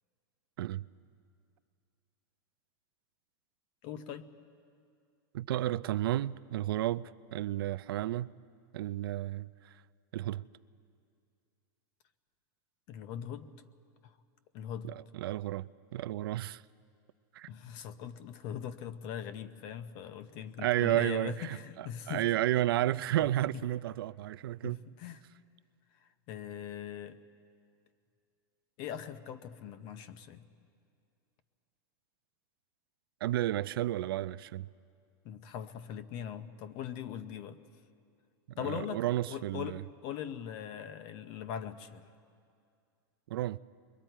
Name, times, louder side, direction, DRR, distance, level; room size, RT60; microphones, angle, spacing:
voice 1, 3.8-4.3 12.9-13.5 14.0-14.2 14.5-14.9 17.5-22.3 23.5-23.6 24.6-25.2 26.0-27.2 28.8-30.4 35.2-37.6 38.6-42.1, left 9 dB, 40° left, 0.8 m, -41 dB
voice 2, 5.3-8.3 8.7-9.5 10.1-10.4 14.8-16.6 17.3-17.5 20.6-24.8 33.2-34.7 38.6-39.8 43.3-43.6, right 14 dB, 85° right, 0.4 m, -32 dB
28.5 x 22.0 x 4.5 m
supercardioid pair, 160°, 12 cm